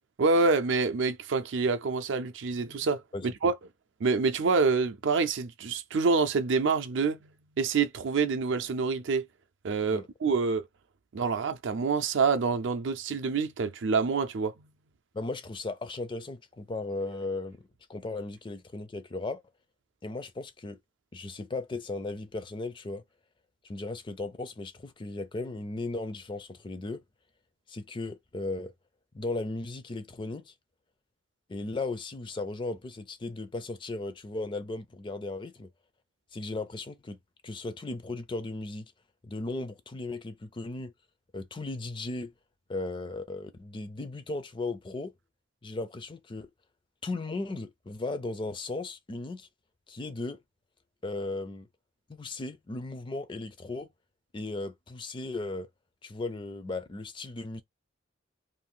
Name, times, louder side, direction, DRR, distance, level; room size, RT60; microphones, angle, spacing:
voice 1, 0.2-3.5 4.0-7.2 7.6-9.2 9.6-10.6 11.1-14.5, right 4 dB, 65° right, 0.4 m, -27 dB
voice 2, 3.1-3.5 9.9-10.1 15.1-19.4 20.0-20.8 21.1-23.0 23.6-27.0 27.7-28.7 29.1-30.5 31.5-35.7 36.3-37.2 37.4-38.9 39.2-40.9 41.3-42.3 42.7-45.1 45.6-46.5 47.0-49.5 49.9-50.4 51.0-51.7 52.1-53.9 54.3-55.7 56.0-57.6, left 2 dB, 25° left, 0.4 m, -36 dB
2.6 x 2.4 x 3.7 m
head